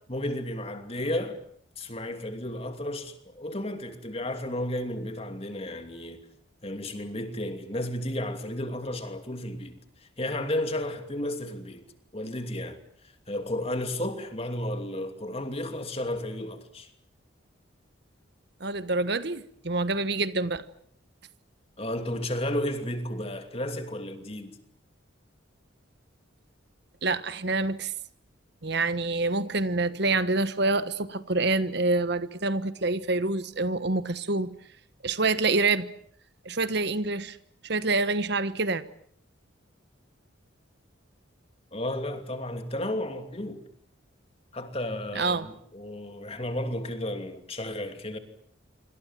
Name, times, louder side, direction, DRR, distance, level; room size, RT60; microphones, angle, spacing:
voice 1, 0.1-1.4 1.8-6.2 6.6-9.8 10.2-11.8 12.1-16.9 21.8-24.6 41.7-43.6 44.5-48.2, left 1 dB, 30° left, 2.8 m, -33 dB
voice 2, 18.6-20.6 27.0-27.9 28.6-34.5 35.0-35.9 36.4-37.4 37.6-38.8 45.1-45.5, right 3 dB, 55° right, 1.3 m, -26 dB
26.5 x 25.0 x 7.6 m
head